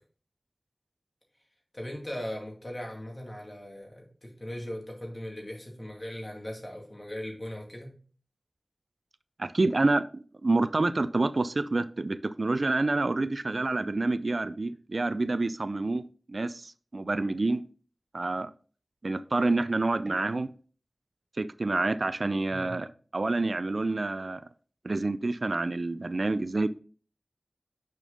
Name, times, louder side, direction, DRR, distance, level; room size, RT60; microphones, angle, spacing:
voice 1, 1.7-7.9 22.5-22.7, left 1 dB, 35° left, 2.3 m, -39 dB
voice 2, 9.4-10.0 10.4-16.0 16.3-17.6 18.1-18.5 19.0-20.5 21.4-22.9 23.1-24.4 24.8-26.7, right 2 dB, 65° right, 0.3 m, -28 dB
6.5 x 5.1 x 3.9 m
wide cardioid pair, 60°, 0 cm